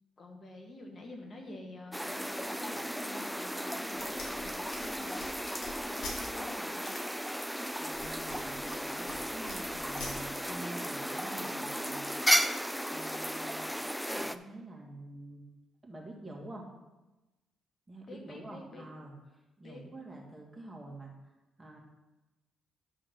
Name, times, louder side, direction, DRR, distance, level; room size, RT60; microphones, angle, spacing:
voice 1, 0.2-5.3 5.7-7.0 18.1-18.8 19.6-19.8, left 2 dB, 45° left, 2 dB, 1.4 m, -48 dB
masked lapwing, 1.9-14.4, equal, ahead, 0.4 m, -34 dB
sound 1, 3.9-6.2 6.8-7.0 7.7-9.2 9.5-10.1, left 2 dB, 75° left, 2.4 m, -45 dB
voice 2, 7.8-12.1 12.9-13.7 14.1-15.4 15.8-16.7 17.9-19.1 19.6-21.3 21.6-21.8, right 1 dB, 20° right, -1 dB, 1.9 m, -47 dB
9.9 x 3.8 x 6.5 m, 1.1 s
cardioid pair, 90°, 0 cm